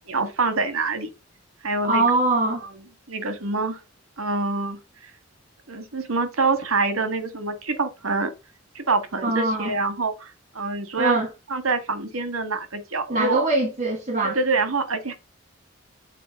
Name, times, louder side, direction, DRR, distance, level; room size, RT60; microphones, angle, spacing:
voice 1, 0.0-1.1 1.6-2.0 2.6-2.7 3.1-3.8 4.2-4.8 5.7-8.3 8.7-11.2 11.5-13.4 14.2-15.1, right 3 dB, 90° right, 1.6 m, -25 dB
voice 2, 1.8-2.6 9.2-9.7 11.0-11.3 13.1-14.4, right 2 dB, 35° right, 1.6 m, -22 dB
9.1 x 4.2 x 5.2 m
head